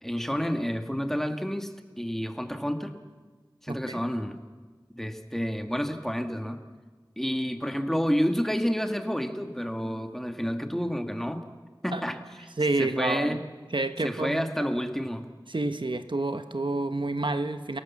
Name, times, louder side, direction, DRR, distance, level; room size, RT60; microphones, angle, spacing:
voice 1, 0.0-2.9 3.6-4.4 5.0-6.6 7.2-11.4 11.8-12.5 12.8-13.4 14.0-15.3, equal, 5° left, 6 dB, 2.0 m, -29 dB
voice 2, 3.7-4.0 11.9-12.0 12.6-13.4 13.7-14.5 15.5-17.8, right 2 dB, 75° right, 9 dB, 1.3 m, -29 dB
29.5 x 18.0 x 7.3 m, 1.4 s
wide cardioid pair, 40°, 8 cm